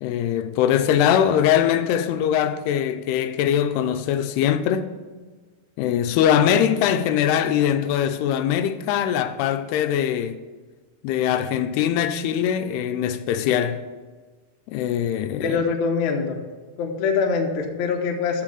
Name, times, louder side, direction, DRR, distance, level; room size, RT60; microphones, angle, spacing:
voice 1, 0.0-4.9 5.8-10.4 11.0-13.8 14.7-15.6, left 9 dB, 85° left, 2.6 m, -22 dB
voice 2, 15.4-16.4 16.8-18.4, left 5 dB, 70° left, 1.8 m, -24 dB
7.6 x 6.5 x 6.5 m
omnidirectional pair, 4.6 m